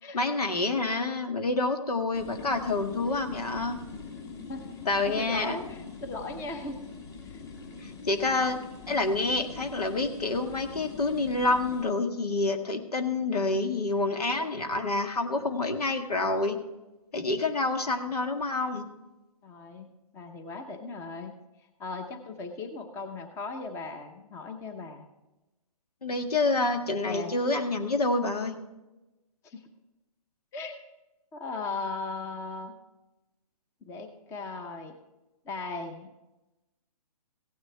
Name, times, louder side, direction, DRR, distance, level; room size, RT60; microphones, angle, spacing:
voice 1, 0.1-3.8 4.9-5.6 7.8-8.6 8.9-16.6 17.1-18.9 26.0-28.6, left 2 dB, 80° left, 6 dB, 1.7 m, -28 dB
sound 1, 2.1-11.8, left 4 dB, 40° left, 3.1 m, -43 dB
voice 2, 5.0-6.8 7.2-7.4 19.4-21.4 21.8-25.1 27.1-27.4 29.4-29.6 30.5-30.8 31.3-32.8 33.8-34.9 35.4-36.1, left 3 dB, 15° left, 7 dB, 0.8 m, -38 dB
16.5 x 9.6 x 3.4 m, 1.0 s
hypercardioid pair, 145°, 19 cm